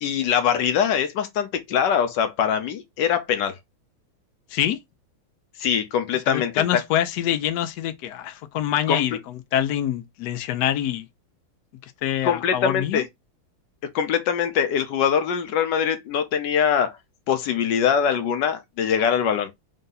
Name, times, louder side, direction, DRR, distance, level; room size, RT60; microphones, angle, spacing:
voice 1, 0.0-3.6 5.6-6.6 8.9-9.0 12.2-13.0 13.9-16.9 17.3-19.5, left 8 dB, 65° left, 1.2 m, -23 dB
voice 2, 6.3-11.1 12.0-13.0, left 11 dB, 85° left, 0.9 m, -25 dB
3.7 x 2.7 x 3.8 m
omnidirectional pair, 2.3 m